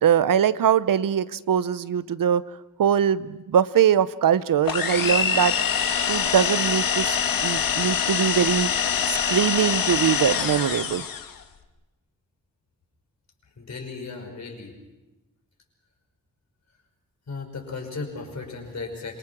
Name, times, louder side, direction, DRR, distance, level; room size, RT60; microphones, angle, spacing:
voice 1, 0.0-2.4 2.8-5.5 6.1-7.2 7.4-8.7 9.1-11.0, right 8 dB, 75° right, 16 dB, 0.7 m, -22 dB
sound 1, 4.7-11.4, left 7 dB, 80° left, 1.5 m, -24 dB
voice 2, 13.6-14.7 17.3-19.2, left 4 dB, 55° left, 2 dB, 5.5 m, -35 dB
27.0 x 24.0 x 6.1 m, 1.0 s
wide cardioid pair, 150°, 34 cm